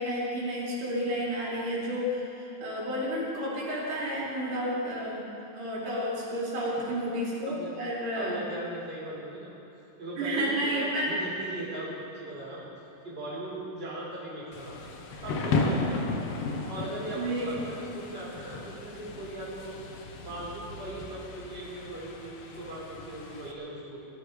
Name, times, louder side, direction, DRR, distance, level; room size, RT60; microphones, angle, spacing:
voice 1, 0.0-5.2 5.5-8.3 10.2-11.2 17.1-17.5, equal, 90° right, -7 dB, 6.2 m, -31 dB
voice 2, 8.1-9.5 10.0-12.6 13.0-14.9 15.2-16.0 16.7-19.7 20.2-24.1, right 1 dB, 15° right, -7 dB, 4.3 m, -39 dB
Thunder / Rain, 14.5-23.5, left 3 dB, 80° left, 1.3 m, -35 dB
18.5 x 15.0 x 4.9 m, 2.9 s
omnidirectional pair, 4.4 m